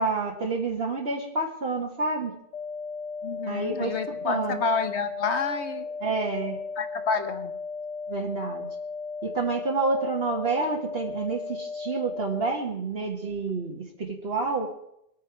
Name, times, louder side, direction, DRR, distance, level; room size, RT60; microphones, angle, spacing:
voice 1, 0.0-2.4 3.5-3.9 4.2-4.6 6.0-6.6 8.1-8.6 9.2-14.7, right 3 dB, 65° right, 0 dB, 1.7 m, -29 dB
sound 1, 2.5-12.5, left 4 dB, 50° left, 0.6 m, -35 dB
voice 2, 3.2-5.9 6.8-7.6, left 5 dB, 85° left, 9 dB, 1.4 m, -29 dB
22.5 x 9.0 x 4.6 m, 0.78 s
omnidirectional pair, 1.1 m